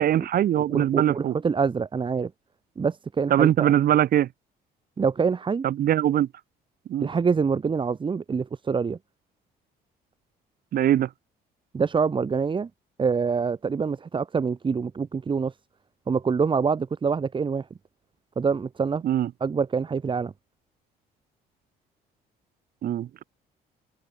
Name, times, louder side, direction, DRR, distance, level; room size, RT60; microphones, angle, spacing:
voice 1, 0.0-1.3 3.3-4.3 5.6-6.3 6.9-7.1 10.7-11.1 19.0-19.3 22.8-23.2, right 11 dB, 60° right, 5.8 m, -22 dB
voice 2, 0.6-2.3 2.8-3.7 5.0-5.6 7.0-9.0 11.7-12.7 13.0-15.6 16.1-17.7 18.4-19.0 19.4-20.3, right 5 dB, 30° right, 2.4 m, -25 dB
open air
cardioid pair, 110°, 17 cm